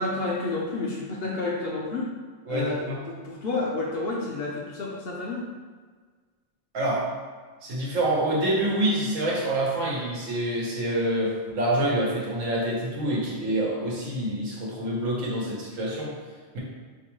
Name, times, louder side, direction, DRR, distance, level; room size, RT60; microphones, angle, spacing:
voice 1, 0.0-2.1 2.5-5.4, left 2 dB, 60° left, -2 dB, 0.7 m, -30 dB
voice 2, 2.5-3.0 6.7-7.0 7.6-16.1, right 1 dB, 90° right, -5 dB, 1.3 m, -26 dB
4.4 x 2.2 x 3.0 m, 1.5 s
omnidirectional pair, 1.3 m